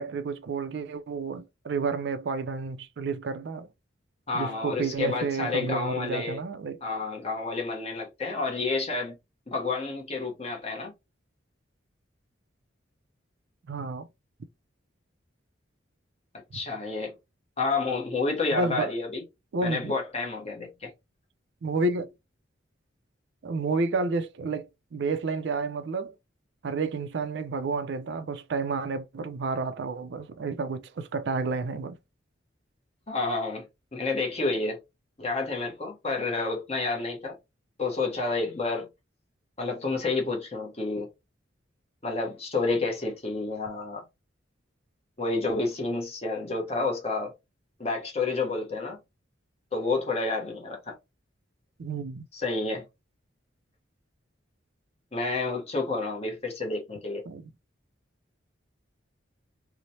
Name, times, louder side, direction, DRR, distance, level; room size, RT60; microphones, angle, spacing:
voice 1, 0.0-3.7 4.3-6.8 13.7-14.1 16.5-16.6 18.5-18.9 19.5-19.9 21.6-22.1 23.4-26.1 26.6-32.0 51.8-52.2 57.3-57.5, right 4 dB, 60° right, 0.4 m, -30 dB
voice 2, 4.3-6.4 6.8-9.1 9.5-10.9 16.5-17.1 17.6-19.2 19.6-20.9 33.1-33.7 33.9-34.8 35.2-37.4 37.8-38.9 39.6-41.1 42.0-44.0 45.2-47.3 47.8-49.0 49.7-51.0 52.3-52.8 55.1-57.2, left 3 dB, 30° left, 0.8 m, -29 dB
3.0 x 2.0 x 2.6 m
head